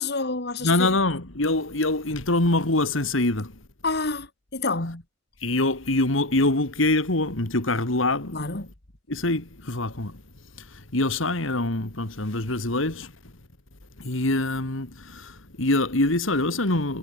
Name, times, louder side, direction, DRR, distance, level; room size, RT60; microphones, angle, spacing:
voice 1, 0.0-0.9 3.8-5.0 8.3-8.7, left 3 dB, 55° left, 2.8 m, -28 dB
voice 2, 0.6-3.5 5.4-8.4 9.1-10.2 10.6-13.1 14.0-17.0, left 2 dB, 85° left, 2.9 m, -24 dB
head